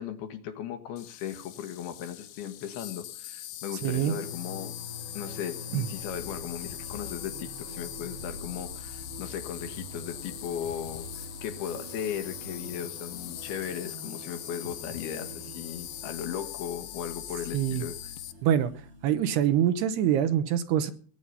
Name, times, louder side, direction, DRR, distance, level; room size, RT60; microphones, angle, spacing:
voice 1, 0.0-4.7 5.1-17.9, left 9 dB, 70° left, 7 dB, 3.1 m, -37 dB
Insect, 1.0-18.3, left 13 dB, 85° left, 1.9 m, -42 dB
sound 1, 3.8-20.1, left 1 dB, 45° right, 6.9 m, -45 dB
voice 2, 3.8-4.2 5.7-5.9 17.5-17.8 18.4-18.7 19.0-20.9, right 10 dB, 75° right, 10 dB, 2.9 m, -25 dB
20.0 x 9.2 x 5.7 m, 0.43 s
omnidirectional pair, 5.0 m